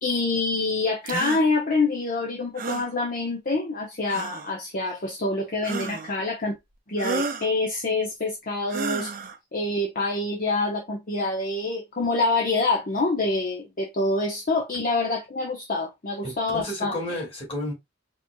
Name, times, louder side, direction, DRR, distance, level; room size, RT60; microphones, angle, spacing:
voice 1, 0.0-6.6 6.9-9.1 9.5-17.2, left 3 dB, 45° left, 0.9 m, -26 dB
sound 1, 1.1-1.4 2.6-2.9 4.1-4.5 5.6-6.2 7.0-7.5 8.7-9.4, right 4 dB, 45° right, 0.7 m, -31 dB
voice 2, 16.2-17.7, left 1 dB, 30° left, 2.6 m, -32 dB
5.1 x 3.1 x 2.3 m
head